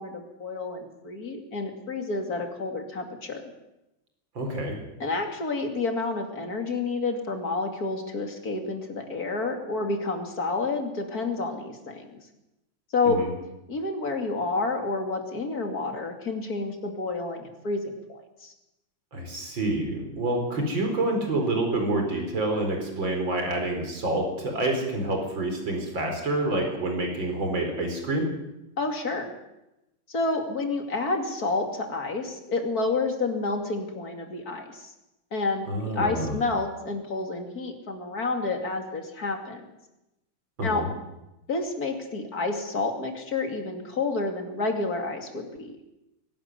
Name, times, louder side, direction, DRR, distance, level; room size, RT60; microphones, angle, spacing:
voice 1, 0.0-3.4 5.0-12.2 12.9-13.2 13.7-18.5 28.8-29.3 30.1-34.9 35.3-39.7 40.6-40.8 41.5-45.8, left 3 dB, 50° left, 4 dB, 3.1 m, -29 dB
voice 2, 4.3-4.8 13.1-13.3 19.1-28.3 35.7-36.3 40.6-40.9, right 2 dB, 75° right, 3 dB, 5.1 m, -27 dB
22.0 x 12.0 x 9.7 m, 0.93 s
omnidirectional pair, 2.1 m